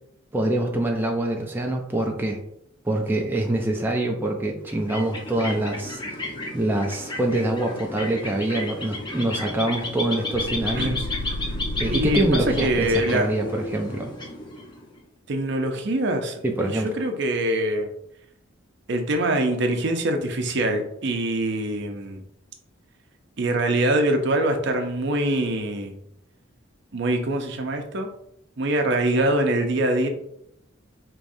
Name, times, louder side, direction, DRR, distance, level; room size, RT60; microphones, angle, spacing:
voice 1, 0.3-2.4 2.8-6.0 6.5-11.1 11.8-14.1 16.4-16.9, right 1 dB, 10° right, 0 dB, 0.4 m, -25 dB
sound 1, 4.6-15.0, left 2 dB, 25° left, 0.7 m, -33 dB
sound 2, 10.3-13.3, left 1 dB, 55° left, 0.4 m, -32 dB
voice 2, 11.9-13.3 15.3-17.9 18.9-22.2 23.4-25.9 26.9-28.1 28.6-30.1, right 1 dB, 60° right, 5 dB, 0.6 m, -24 dB
4.9 x 3.0 x 2.6 m, 0.75 s
head